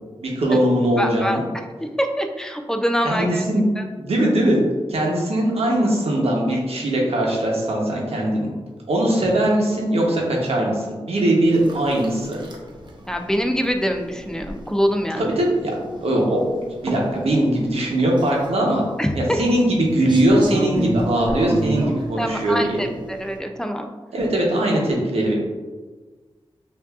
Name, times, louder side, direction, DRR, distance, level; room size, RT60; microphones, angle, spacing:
voice 1, 0.2-1.4 3.0-3.6 4.0-4.6 4.9-8.5 8.9-12.4 15.2-15.7 16.0-18.8 19.2-22.8 24.1-25.3, right 1 dB, 90° right, -2 dB, 0.9 m, -20 dB
voice 2, 1.0-1.6 2.0-3.4 3.8-3.9 13.1-15.3 19.0-19.4 22.2-23.9, equal, 5° left, 4 dB, 0.3 m, -24 dB
sound 1, 11.5-23.4, right 1 dB, 50° right, 0.7 m, -31 dB
5.9 x 2.6 x 2.4 m, 1.3 s
wide cardioid pair, 125°, 10 cm